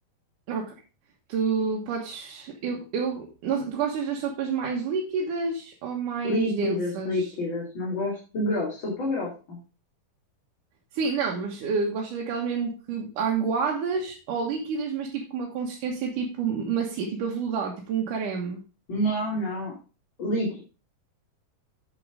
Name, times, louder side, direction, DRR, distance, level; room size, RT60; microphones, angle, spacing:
voice 1, 1.3-7.3 10.9-18.6, right 5 dB, 70° right, -1 dB, 2.8 m, -29 dB
voice 2, 6.2-9.6 18.9-19.8 20.2-20.6, left 1 dB, 35° left, -4 dB, 3.1 m, -28 dB
8.3 x 7.6 x 5.0 m, 0.34 s
omnidirectional pair, 3.9 m